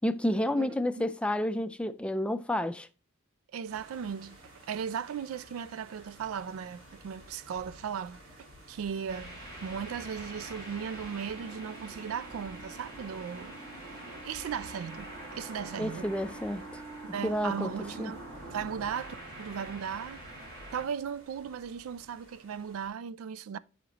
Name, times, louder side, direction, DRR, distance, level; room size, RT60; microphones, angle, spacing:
voice 1, 0.0-2.9 15.8-16.8 17.2-17.7 18.0-18.1, left 1 dB, 5° left, 0.3 m, -30 dB
voice 2, 3.5-4.4 4.7-9.3 9.6-13.5 14.2-16.1 17.1-20.2 20.7-23.6, right 7 dB, 90° right, 0.3 m, -37 dB
sound 1, 3.7-22.9, equal, 70° right, 2.4 m, -54 dB
sound 2, 9.1-20.8, right 2 dB, 50° right, 3.0 m, -44 dB
7.8 x 5.0 x 2.9 m
head